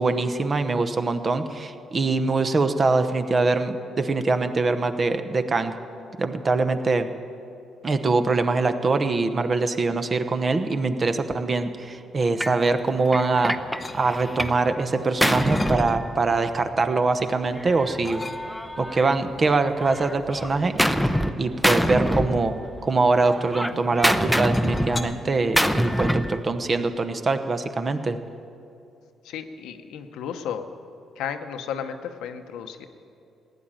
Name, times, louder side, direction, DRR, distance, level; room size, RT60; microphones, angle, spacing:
voice 1, 0.0-5.7 6.2-7.1 7.8-13.5 13.9-18.3 18.8-20.7 21.0-22.5 22.8-28.2, right 3 dB, 35° right, 9 dB, 1.0 m, -23 dB
Gunshot gunfire, 12.4-12.6 13.1-14.6 14.9-16.6 17.6-19.4 19.8-21.3 21.6-22.9 23.2-26.4, equal, ahead, 0.7 m, -25 dB
sound 1, 13.8-14.5 14.9-16.2 16.6-17.4 18.0-18.8 19.7-23.8 24.1-25.0, left 2 dB, 30° left, 0.9 m, -39 dB
voice 2, 29.2-30.7 31.2-32.9, left 8 dB, 90° left, 7 dB, 0.9 m, -33 dB
16.0 x 10.0 x 9.0 m, 2.6 s
cardioid pair, 90°, 0 cm